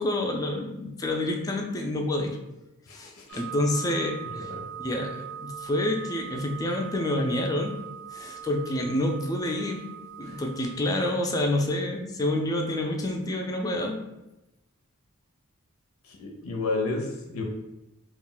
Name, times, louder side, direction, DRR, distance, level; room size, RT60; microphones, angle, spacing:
voice 1, 0.0-2.4 2.9-4.5 4.8-7.8 8.1-9.9 10.2-14.0, left 1 dB, 15° left, 2 dB, 0.3 m, -28 dB
voice 2, 2.9-3.4 4.5-4.6 10.2-10.4 16.1-17.4, left 3 dB, 90° left, 1 dB, 0.5 m, -32 dB
sound 1, 3.3-10.7, right 8 dB, 85° right, 0.5 m, -41 dB
2.3 x 2.1 x 3.7 m, 0.96 s
head